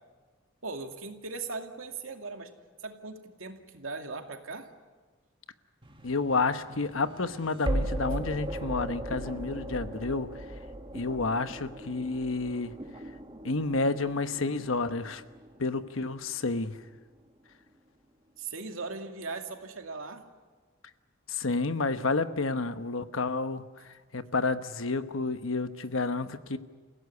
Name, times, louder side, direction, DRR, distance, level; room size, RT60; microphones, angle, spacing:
voice 1, 0.6-2.5 2.8-4.7 18.4-20.3, right 3 dB, 85° right, 4 dB, 2.4 m, -39 dB
sound 1, 5.8-16.8, right 1 dB, 25° right, 1.8 m, -38 dB
voice 2, 6.0-10.4 10.9-12.7 13.4-15.2 15.6-16.8 21.3-26.6, left 3 dB, 75° left, 10 dB, 1.1 m, -30 dB
29.0 x 16.5 x 9.7 m, 1.4 s
head